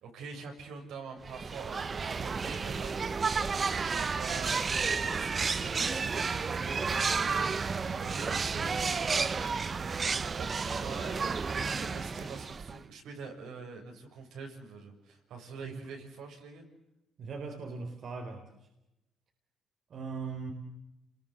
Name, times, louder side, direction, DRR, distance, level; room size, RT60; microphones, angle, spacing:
voice 1, 0.0-3.1 4.0-9.1 10.4-16.7, right 4 dB, 80° right, 2 dB, 7.1 m, -45 dB
sound 1, 1.2-12.9, right 5 dB, 40° right, 1.1 m, -31 dB
voice 2, 17.2-18.5 19.9-20.5, right 4 dB, 60° right, 3 dB, 4.5 m, -39 dB
30.0 x 22.5 x 8.2 m, 0.92 s
cardioid pair, 90°, 0 cm